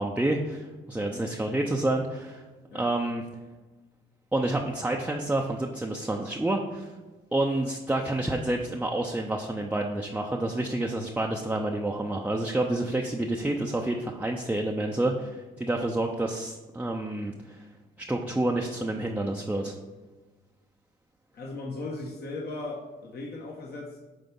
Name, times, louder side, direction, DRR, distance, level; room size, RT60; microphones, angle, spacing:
voice 1, 0.0-2.4 2.7-3.2 4.3-6.9 7.3-17.7 18.0-19.7, right 1 dB, 10° right, 1 dB, 0.6 m, -29 dB
voice 2, 21.3-24.0, left 2 dB, 55° left, -2 dB, 1.3 m, -37 dB
9.2 x 3.4 x 5.4 m, 1.2 s
cardioid pair, 90°, 20 cm